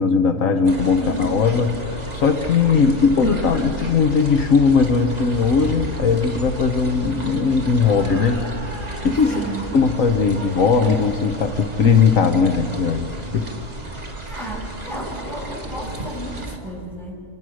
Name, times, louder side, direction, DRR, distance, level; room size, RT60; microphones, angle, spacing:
voice 1, 0.0-8.4 9.0-9.4 9.7-13.4, left 5 dB, 75° left, 7 dB, 1.5 m, -18 dB
sound 1, 0.6-16.6, right 2 dB, 30° right, 2.4 m, -32 dB
voice 2, 1.0-1.3 1.6-1.7 9.2-9.6 14.2-17.1, right 1 dB, ahead, -3 dB, 6.6 m, -33 dB
29.5 x 26.0 x 6.4 m, 2.6 s
omnidirectional pair, 1.4 m